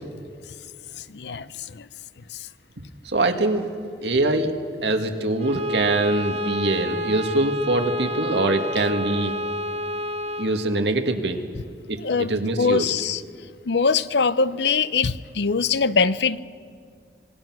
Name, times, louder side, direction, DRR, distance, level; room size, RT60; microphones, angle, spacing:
voice 1, 1.0-1.9 2.3-2.5 12.0-13.2 13.6-16.4, left 5 dB, 80° left, 16 dB, 0.6 m, -23 dB
voice 2, 3.1-3.7 4.0-4.5 4.8-9.4 10.4-11.4 11.9-12.0 12.3-12.9, right 2 dB, 85° right, 5 dB, 1.9 m, -23 dB
Bowed string instrument, 5.4-10.6, equal, 40° right, 1.7 m, -29 dB
26.5 x 20.0 x 6.1 m, 2.2 s
head